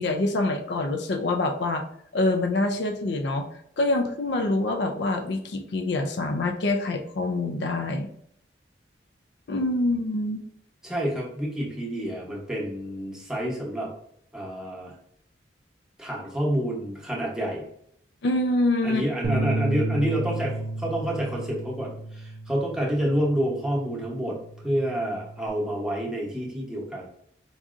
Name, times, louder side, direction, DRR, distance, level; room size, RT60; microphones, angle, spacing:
voice 1, 0.0-1.8 2.1-3.5 3.8-8.1 9.5-10.4 18.2-19.0, left 2 dB, 70° left, 5 dB, 0.4 m, -25 dB
voice 2, 10.8-13.9 14.3-14.9 16.0-17.6 18.8-24.4 24.6-27.0, equal, 5° right, -4 dB, 0.9 m, -28 dB
sound 1, 19.2-25.5, right 2 dB, 75° right, 0.4 m, -32 dB
4.7 x 2.6 x 2.4 m, 0.69 s
head